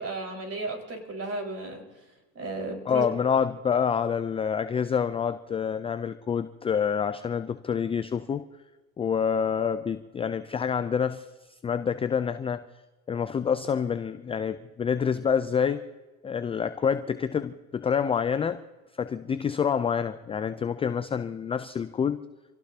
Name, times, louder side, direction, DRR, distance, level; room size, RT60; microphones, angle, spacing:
voice 1, 0.0-1.8 2.3-3.1, right 2 dB, 30° right, 2 dB, 4.8 m, -34 dB
voice 2, 2.9-8.5 9.0-11.3 11.6-12.6 13.1-15.8 16.2-18.6 19.0-22.3, left 7 dB, 15° left, 11 dB, 0.4 m, -27 dB
27.5 x 17.5 x 2.8 m, 1.2 s
hypercardioid pair, 90°, 50 cm